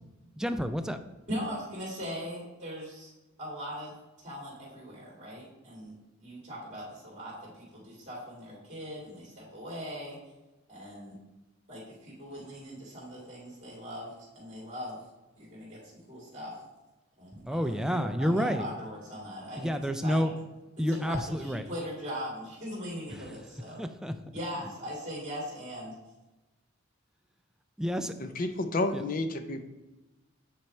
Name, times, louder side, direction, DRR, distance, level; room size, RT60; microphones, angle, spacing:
voice 1, 0.4-1.0 17.4-18.7 19.6-20.3 20.8-21.7 23.1-23.3 23.8-24.2 24.6-24.7 27.8-28.1 28.9-29.0, equal, 5° right, 0.3 m, -29 dB
voice 2, 1.3-3.1 3.4-3.9 4.2-5.9 6.2-7.3 7.6-10.2 10.7-11.2 11.7-14.1 14.3-15.0 15.4-15.8 16.1-16.5 17.2-20.3 20.9-23.8 24.3-25.9, equal, 35° right, 2.4 m, -40 dB
voice 3, 28.2-29.6, left 2 dB, 45° left, 0.6 m, -30 dB
8.7 x 4.5 x 3.2 m
head